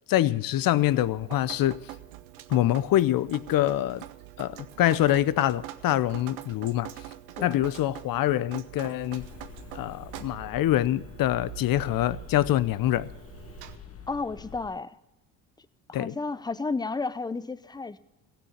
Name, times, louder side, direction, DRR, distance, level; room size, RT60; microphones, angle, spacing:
voice 1, 0.1-1.8 2.5-4.0 4.4-6.9 7.4-9.3 9.7-13.1 15.9-16.1, left 13 dB, 55° left, 0.7 m, -25 dB
Drip, 0.8-13.8, right 14 dB, 85° right, 0.9 m, -44 dB
sound 1, 9.2-14.7, left 7 dB, 35° left, 1.2 m, -46 dB
voice 2, 14.1-15.0 15.9-18.0, left 3 dB, 10° left, 0.5 m, -32 dB
16.0 x 6.9 x 8.0 m
hypercardioid pair, 65°, 43 cm